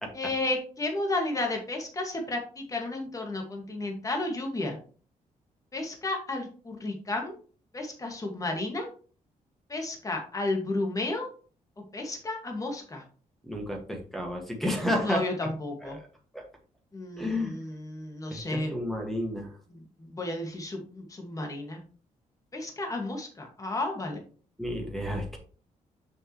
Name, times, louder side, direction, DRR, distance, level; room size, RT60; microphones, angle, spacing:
voice 1, 0.1-4.8 5.7-7.3 7.7-8.9 9.7-11.3 11.9-13.0 15.0-16.0 16.9-18.7 19.7-21.8 22.5-24.2, left 2 dB, 25° left, 2 dB, 2.0 m, -32 dB
voice 2, 13.4-15.3 15.8-16.0 16.3-16.4 17.2-17.6 18.3-19.5 24.6-25.4, left 1 dB, ahead, 1 dB, 1.9 m, -31 dB
6.6 x 6.4 x 3.1 m, 0.40 s
cardioid pair, 110°, 13 cm